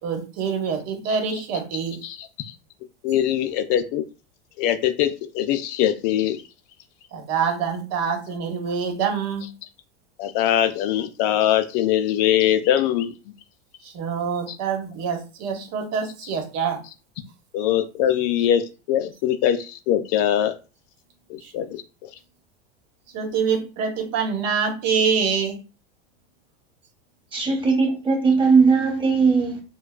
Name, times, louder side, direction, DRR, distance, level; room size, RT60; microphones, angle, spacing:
voice 1, 0.0-2.0 7.1-9.4 13.8-16.8 21.4-21.5 23.1-25.6, right 6 dB, 55° right, 1.1 m, -25 dB
voice 2, 2.0-2.5 3.0-4.0 4.6-6.4 10.2-13.1 17.5-18.6 18.9-20.5 21.3-21.8, left 11 dB, 50° left, 0.4 m, -22 dB
voice 3, 27.3-29.6, right 4 dB, 15° right, 1.1 m, -19 dB
4.4 x 2.2 x 2.3 m
supercardioid pair, 120°, 32 cm